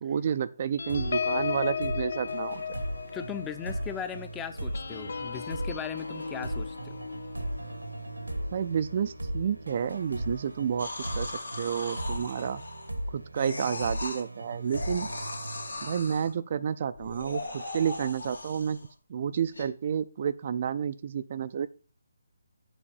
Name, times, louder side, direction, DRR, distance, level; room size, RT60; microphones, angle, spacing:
voice 1, 0.0-2.6 8.5-10.9 11.1-12.6 13.1-15.1 15.8-18.8 19.1-21.7, right 8 dB, 40° right, 12 dB, 0.4 m, -30 dB
sound 1, 0.8-9.7 10.1-10.4 10.6-11.0, left 6 dB, 55° left, 0.4 m, -36 dB
sound 2, 0.9-16.3, right 1 dB, 85° right, 1.2 m, -38 dB
voice 2, 3.1-7.1, left 7 dB, 10° left, 10 dB, 0.6 m, -38 dB
sound 3, 10.8-13.0 13.4-14.2 14.7-16.3 16.9-18.9 19.5-19.6, left 2 dB, 80° left, 2.2 m, -38 dB
7.2 x 4.6 x 6.8 m, 0.36 s
figure-of-eight pair, 145°, 0 cm